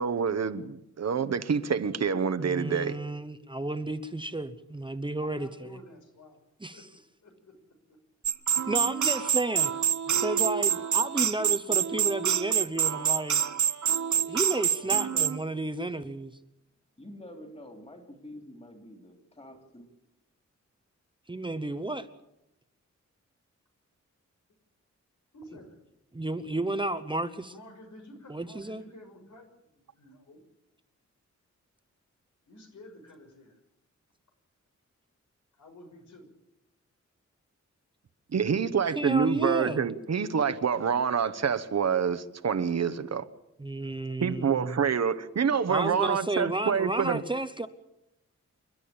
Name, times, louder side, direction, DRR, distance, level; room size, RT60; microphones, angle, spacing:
voice 1, 0.0-3.0 38.3-43.3 44.2-47.2, right 6 dB, 60° right, 1.1 m, -27 dB
voice 2, 2.4-4.5 4.7-5.7 6.6-6.8 8.7-9.7 10.2-13.4 14.2-16.4 21.3-22.1 26.1-27.5 28.3-28.8 39.0-39.8 43.6-44.8 45.7-47.7, right 2 dB, 15° right, 0.9 m, -32 dB
voice 3, 5.3-6.4 6.7-6.8 7.2-7.5 25.3-25.8 27.5-30.4 32.5-33.6 35.6-36.3, left 1 dB, 90° left, 6.1 m, -51 dB
sound 1, 8.2-15.4, right 9 dB, 85° right, 1.0 m, -26 dB
voice 4, 14.9-15.3 17.0-19.9, left 1 dB, 20° left, 3.5 m, -46 dB
29.0 x 12.0 x 8.8 m
wide cardioid pair, 175°, 29 cm